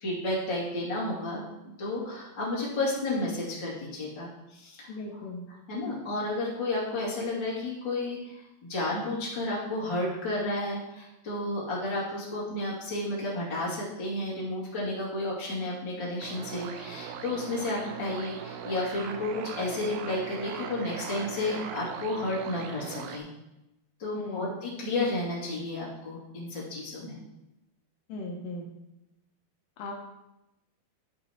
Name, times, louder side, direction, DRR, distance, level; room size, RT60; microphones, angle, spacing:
voice 1, 0.0-1.4 1.8-5.2 5.5-8.4 8.7-23.3 24.0-27.2, left 2 dB, 35° left, -6 dB, 2.4 m, -32 dB
voice 2, 4.9-5.4 24.1-24.5 28.1-28.7 29.8-29.9, left 2 dB, 85° left, 0 dB, 1.8 m, -37 dB
sound 1, 16.2-23.2, right 8 dB, 85° right, 2.1 m, -40 dB
14.5 x 5.4 x 3.0 m, 0.95 s
omnidirectional pair, 4.9 m